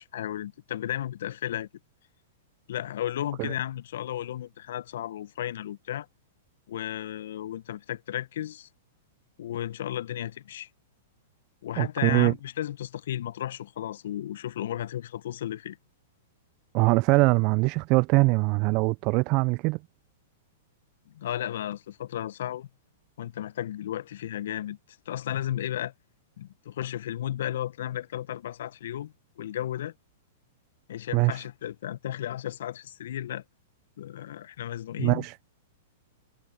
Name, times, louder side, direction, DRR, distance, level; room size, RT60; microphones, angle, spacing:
voice 1, 0.0-1.7 2.7-6.1 6.7-8.7 9.4-10.7 11.6-15.8 21.1-22.7 23.2-24.8 25.1-25.9 26.4-29.9 30.9-33.4 34.0-35.2, left 11 dB, 65° left, 1.2 m, -34 dB
voice 2, 11.8-12.3 16.7-19.8 31.1-31.3 35.0-35.3, right 26 dB, 45° right, 0.5 m, -22 dB
hypercardioid pair, 105°, 0 cm